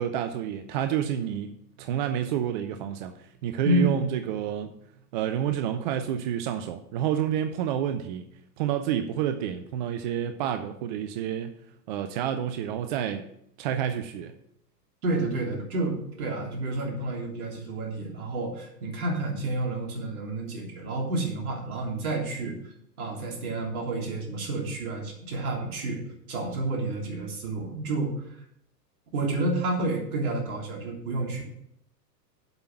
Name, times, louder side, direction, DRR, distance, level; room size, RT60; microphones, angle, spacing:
voice 1, 0.0-1.5 1.8-3.1 3.4-4.8 5.1-8.2 8.6-11.5 11.9-13.2 13.6-14.3, right 10 dB, 30° right, 8 dB, 0.5 m, -29 dB
voice 2, 3.6-4.0 15.0-28.4 29.1-31.4, right 2 dB, 60° right, 0 dB, 3.3 m, -30 dB
7.8 x 5.7 x 7.1 m, 0.75 s
hypercardioid pair, 110°, 49 cm